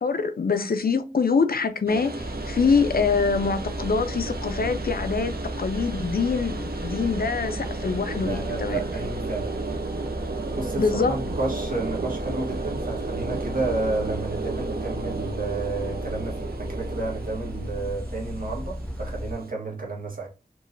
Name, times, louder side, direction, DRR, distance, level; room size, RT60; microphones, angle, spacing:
voice 1, 0.0-8.8 10.8-11.2, left 5 dB, 75° left, 0.5 m, -24 dB
sound 1, 1.9-19.5, right 3 dB, 80° right, 0.7 m, -34 dB
sound 2, 2.2-19.3, equal, 10° left, 0.9 m, -35 dB
voice 2, 8.1-9.6 10.6-20.3, right 3 dB, 65° right, 1.7 m, -31 dB
4.6 x 3.0 x 2.6 m
wide cardioid pair, 60°, 16 cm